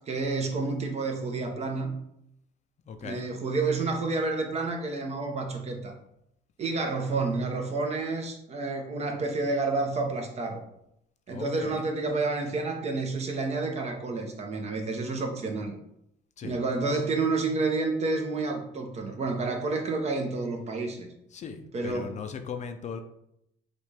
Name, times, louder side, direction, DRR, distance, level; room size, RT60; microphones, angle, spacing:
voice 1, 0.1-2.0 3.0-5.9 6.6-10.6 11.3-15.7 16.4-21.1 21.7-22.2, right 3 dB, 40° right, 3 dB, 0.9 m, -29 dB
voice 2, 2.9-3.3 11.3-11.9 16.4-16.6 21.3-23.0, left 6 dB, 45° left, 7 dB, 0.5 m, -38 dB
6.2 x 2.5 x 3.3 m, 0.77 s
cardioid pair, 110°, 17 cm